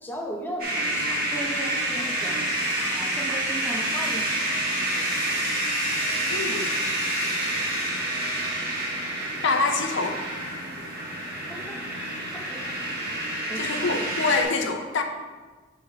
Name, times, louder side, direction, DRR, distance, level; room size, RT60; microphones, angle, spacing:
voice 1, 0.0-2.4 2.8-4.3 11.5-11.8 12.3-12.6 13.5-14.0, right 1 dB, 10° left, -1 dB, 1.0 m, -36 dB
sound 1, 0.6-14.4, right 1 dB, 45° right, 1.9 m, -28 dB
voice 2, 6.3-6.8 9.4-10.2 13.6-15.0, left 4 dB, 60° left, 4 dB, 0.7 m, -25 dB
7.3 x 5.3 x 3.6 m, 1.4 s
head